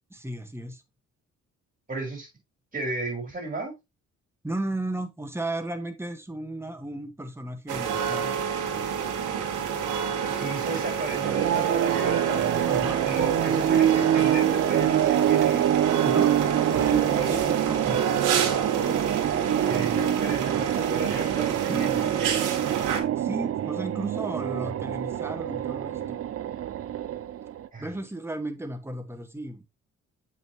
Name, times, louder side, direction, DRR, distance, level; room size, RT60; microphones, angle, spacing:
voice 1, 0.1-0.8 4.4-8.3 12.7-13.0 16.0-18.2 21.5-22.1 23.2-26.2 27.8-29.6, right 1 dB, 10° right, 1.4 m, -34 dB
voice 2, 1.9-2.3 2.7-3.7 10.1-12.4 12.9-15.7 17.1-17.3 19.6-22.4 27.7-28.0, right 2 dB, 30° right, 5.1 m, -34 dB
sound 1, 7.7-23.0, right 7 dB, 85° right, 1.6 m, -29 dB
sound 2, 11.1-27.7, right 11 dB, 50° right, 0.6 m, -25 dB
7.3 x 5.7 x 3.0 m
cardioid pair, 90°, 30 cm